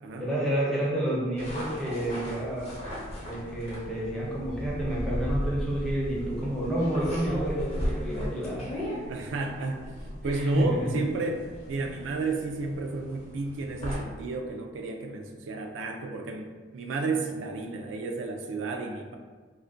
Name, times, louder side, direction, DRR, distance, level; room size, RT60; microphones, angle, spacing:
voice 1, 0.2-2.7 3.2-8.7 10.3-10.9, right 1 dB, 5° left, -6 dB, 0.5 m, -29 dB
sound 1, 1.4-14.0, equal, 35° left, 0.7 m, -37 dB
sound 2, 3.0-14.2, left 3 dB, 90° left, 0.5 m, -53 dB
voice 2, 9.1-11.4 11.7-19.2, right 3 dB, 85° right, 3 dB, 0.3 m, -32 dB
2.4 x 2.1 x 2.4 m, 1.4 s
head